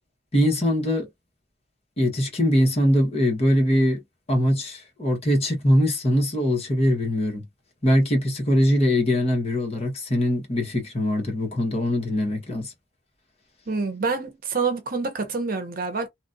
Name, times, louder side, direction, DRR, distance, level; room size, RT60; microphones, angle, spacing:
voice 1, 0.3-1.1 2.0-4.0 4.3-7.4 7.8-12.7, equal, 35° left, 1.3 m, -22 dB
voice 2, 13.7-16.1, right 4 dB, 55° right, 0.8 m, -27 dB
3.0 x 2.4 x 2.6 m
head